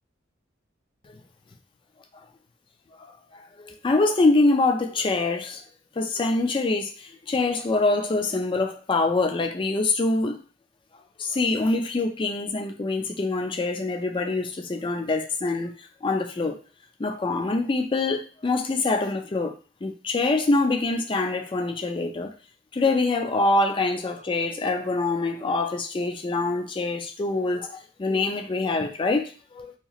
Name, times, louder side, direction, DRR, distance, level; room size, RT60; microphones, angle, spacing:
voice 1, 3.3-5.6 6.0-10.4 11.2-15.7 16.0-16.6 17.0-19.5 19.8-22.3 22.7-29.7, left 3 dB, 25° left, 0.4 m, -25 dB
2.9 x 2.8 x 2.4 m
head